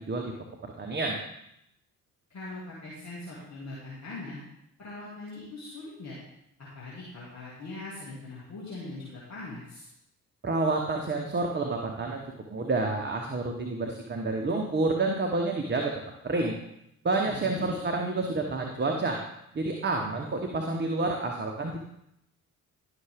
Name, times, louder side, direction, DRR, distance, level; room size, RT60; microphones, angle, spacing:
voice 1, 0.6-1.2 10.4-12.2 12.5-15.9 16.2-16.6 17.0-19.2 19.5-21.8, right 3 dB, 25° right, 2 dB, 1.2 m, -29 dB
voice 2, 2.3-4.4 4.8-6.2 6.6-9.9 17.2-17.8, left 2 dB, 40° left, -7 dB, 2.6 m, -41 dB
11.5 x 5.9 x 3.7 m, 0.80 s
figure-of-eight pair, 45°, 41 cm